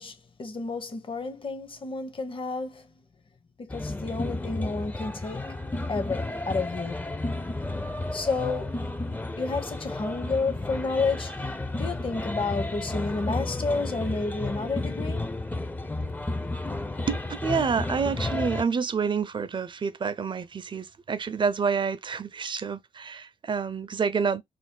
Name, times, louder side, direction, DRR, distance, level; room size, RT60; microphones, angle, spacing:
voice 1, 0.0-2.9 3.6-5.6 5.9-7.2 8.1-8.8 9.4-11.4 11.8-15.2 16.0-16.1, left 4 dB, 45° left, 0.8 m, -31 dB
sound 1, 3.7-18.6, left 2 dB, 15° left, 0.4 m, -32 dB
voice 2, 17.1-24.4, right 6 dB, 40° right, 0.4 m, -28 dB
2.5 x 2.0 x 3.7 m
supercardioid pair, 40°, 12 cm